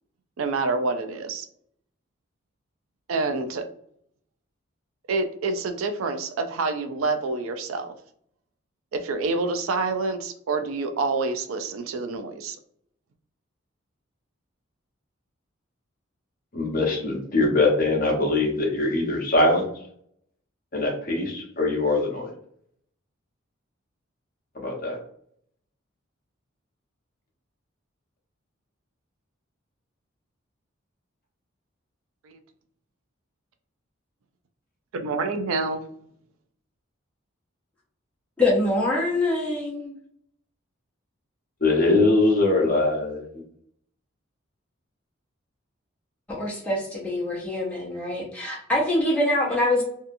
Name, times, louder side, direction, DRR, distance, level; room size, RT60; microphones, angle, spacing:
voice 1, 0.4-1.5 3.1-3.7 5.1-7.9 8.9-12.6 32.2-32.4 34.9-35.8, right 3 dB, 90° right, 7 dB, 0.4 m, -27 dB
voice 2, 16.5-19.7 20.7-22.3 24.5-25.0 41.6-43.4, left 2 dB, 45° left, 0 dB, 0.7 m, -22 dB
voice 3, 38.4-39.9 46.3-49.8, left 1 dB, 5° left, -5 dB, 0.7 m, -24 dB
2.7 x 2.3 x 2.5 m, 0.65 s
head